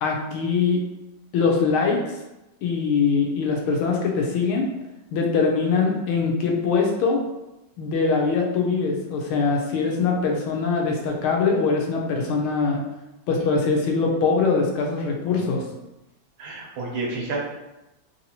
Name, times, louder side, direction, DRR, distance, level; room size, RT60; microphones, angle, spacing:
voice 1, 0.0-0.8 1.3-2.1 2.6-4.7 5.1-7.2 7.8-12.8 13.3-15.6, left 4 dB, 85° left, 0 dB, 1.5 m, -22 dB
voice 2, 16.4-17.4, right 3 dB, 75° right, -3 dB, 1.7 m, -30 dB
3.9 x 2.7 x 2.8 m, 0.96 s
omnidirectional pair, 2.3 m